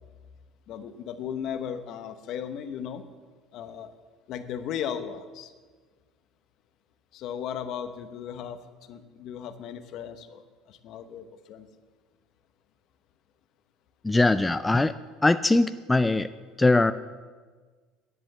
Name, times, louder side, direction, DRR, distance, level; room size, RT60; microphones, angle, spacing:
voice 1, 0.7-3.0 3.5-3.9 4.3-5.5 7.1-11.7, left 8 dB, 60° left, 10 dB, 0.9 m, -36 dB
voice 2, 14.0-14.9 15.2-16.3 16.6-16.9, left 2 dB, 15° left, 12 dB, 0.4 m, -21 dB
11.0 x 7.8 x 7.3 m, 1.5 s
hypercardioid pair, 80°, 0 cm